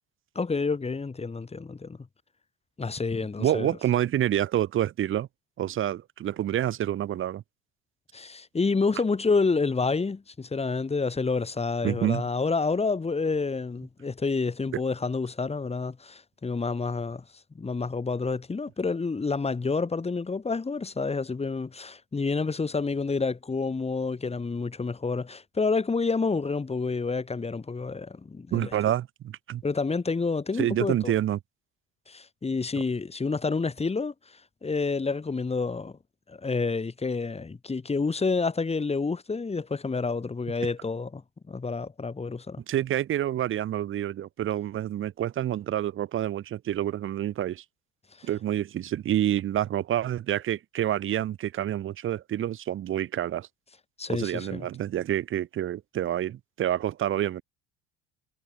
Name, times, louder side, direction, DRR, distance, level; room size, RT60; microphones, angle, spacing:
voice 1, 0.3-2.0 2.8-3.7 8.1-17.2 17.5-28.7 29.6-31.1 32.1-36.0 36.3-41.2 41.5-42.6 48.2-48.3 54.0-54.6, left 4 dB, 20° left, 4.2 m, -29 dB
voice 2, 3.4-5.3 5.6-7.4 11.8-12.2 28.5-29.6 30.6-31.4 42.7-47.6 48.2-53.5 54.1-57.4, right 11 dB, 40° right, 0.9 m, -28 dB
supercardioid pair, 100°, 31 cm